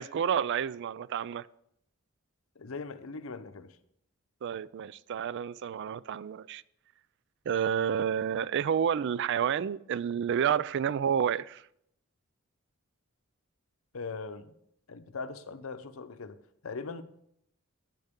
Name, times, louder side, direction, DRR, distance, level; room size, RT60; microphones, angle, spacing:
voice 1, 0.0-1.5 4.4-6.6 7.5-11.6, right 8 dB, 60° right, 0.3 m, -30 dB
voice 2, 2.6-3.8 13.9-14.5 14.9-16.4 16.6-17.0, left 4 dB, 80° left, 0.7 m, -40 dB
12.0 x 9.1 x 3.6 m
head